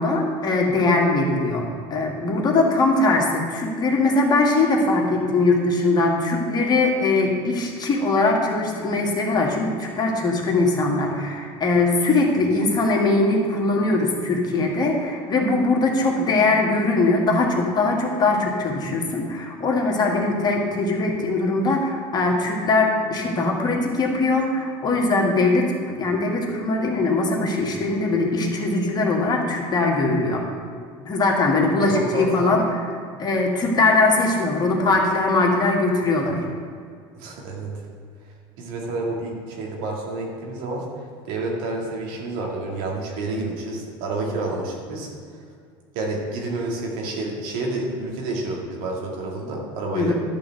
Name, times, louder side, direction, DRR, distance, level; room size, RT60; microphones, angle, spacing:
voice 1, 0.0-30.4 31.1-32.6 33.2-36.4 49.9-50.1, left 2 dB, 35° left, 0 dB, 1.9 m, -21 dB
voice 2, 31.8-32.5 37.1-37.8 38.6-40.8 41.2-45.1 45.9-50.1, right 2 dB, 75° right, 0 dB, 2.1 m, -29 dB
11.5 x 3.9 x 7.6 m, 2.1 s
supercardioid pair, 100°, 12 cm